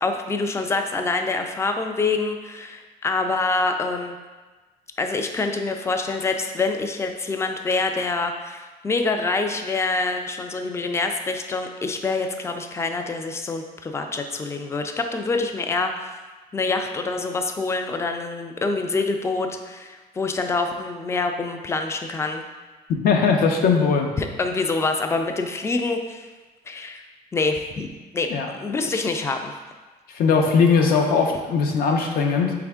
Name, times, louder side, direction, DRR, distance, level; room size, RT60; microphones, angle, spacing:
voice 1, 0.0-4.2 5.0-16.2 16.5-22.4 24.2-26.3 26.7-27.0 27.3-27.9 28.1-28.3 28.6-29.6, left 3 dB, 15° left, 5 dB, 0.4 m, -26 dB
voice 2, 23.0-24.1 28.3-28.9 30.1-32.5, left 5 dB, 60° left, 3 dB, 0.7 m, -20 dB
4.3 x 3.5 x 3.5 m, 1.3 s
cardioid pair, 110°, 17 cm